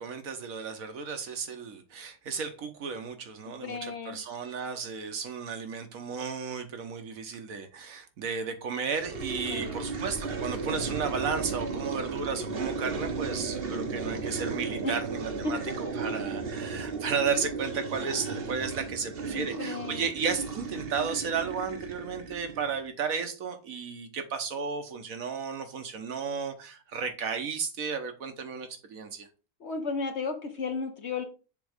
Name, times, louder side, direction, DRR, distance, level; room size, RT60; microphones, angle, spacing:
voice 1, 0.0-29.3, right 6 dB, 65° right, 1.3 m, -34 dB
voice 2, 3.4-4.2 9.5-9.8 14.8-14.9 15.4-15.5 16.0-16.4 19.3-20.1 29.6-31.2, left 4 dB, 50° left, 1.1 m, -34 dB
sound 1, 9.0-22.9, right 4 dB, 45° right, 1.0 m, -35 dB
7.0 x 3.1 x 4.9 m
omnidirectional pair, 1.6 m